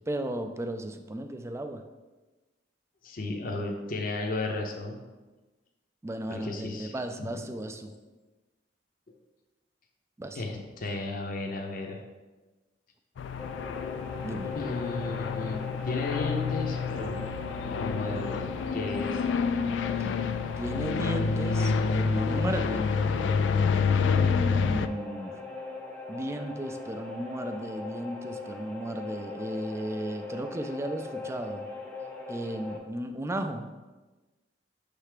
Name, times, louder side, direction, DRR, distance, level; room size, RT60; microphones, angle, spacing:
voice 1, 0.1-1.8 6.0-7.9 10.2-10.4 14.2-14.5 20.6-23.0 24.0-25.4 26.1-31.7 32.3-33.7, right 1 dB, 15° right, 7 dB, 0.4 m, -35 dB
voice 2, 3.0-5.0 6.3-7.3 10.3-12.0 14.5-17.2 17.6-19.2, left 2 dB, 50° left, 2 dB, 0.6 m, -34 dB
sound 1, 13.2-24.9, left 5 dB, 85° left, 0.3 m, -28 dB
sound 2, 13.4-32.8, left 3 dB, 10° left, 0.8 m, -40 dB
6.5 x 3.4 x 4.9 m, 1.2 s
head